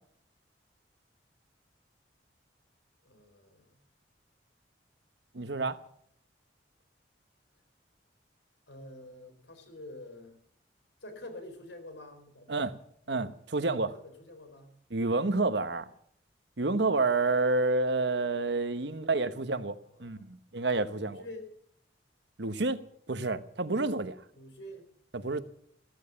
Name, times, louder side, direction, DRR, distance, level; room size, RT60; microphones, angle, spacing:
voice 1, 3.0-3.8 8.7-10.4 11.0-12.5 13.1-13.3 13.6-14.8 19.9-20.3 20.9-21.5 24.3-24.9, left 1 dB, 80° left, 4.2 m, -47 dB
voice 2, 5.3-5.8 12.5-12.7 13.1-14.0 14.9-15.9 16.6-21.2 22.4-22.8 23.1-24.2 25.1-25.4, right 3 dB, 75° right, 1.1 m, -29 dB
15.0 x 14.0 x 7.0 m
head